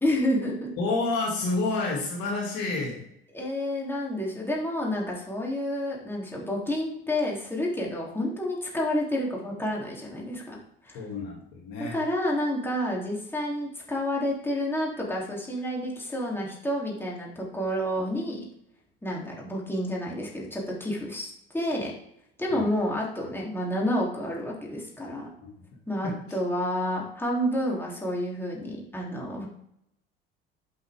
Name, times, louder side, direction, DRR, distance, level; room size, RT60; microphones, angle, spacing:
voice 1, 0.0-0.7 3.3-10.6 10.8-11.0 11.8-18.4 19.0-21.9 22.4-25.3 25.9-29.5, left 1 dB, 10° left, -3 dB, 3.5 m, -29 dB
voice 2, 0.8-3.0 10.9-12.0 22.5-22.7 26.0-26.3, left 3 dB, 55° left, -1 dB, 2.8 m, -29 dB
11.5 x 6.1 x 3.8 m, 0.75 s
figure-of-eight pair, 65°, 29 cm